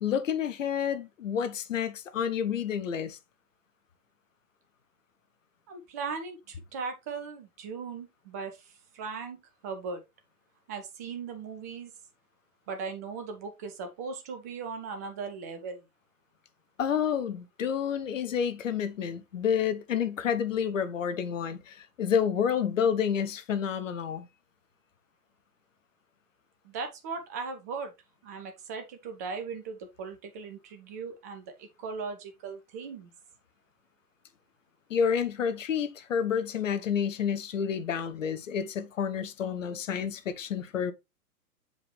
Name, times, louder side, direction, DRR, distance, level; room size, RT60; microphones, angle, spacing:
voice 1, 0.0-3.2 16.8-24.3 34.9-40.9, left 7 dB, 55° left, 1.0 m, -29 dB
voice 2, 5.7-9.4 9.6-10.0 10.7-11.9 12.7-15.8 26.6-27.9 28.2-33.1, right 5 dB, 10° right, 0.4 m, -38 dB
6.9 x 5.0 x 3.2 m
figure-of-eight pair, 115°, 46 cm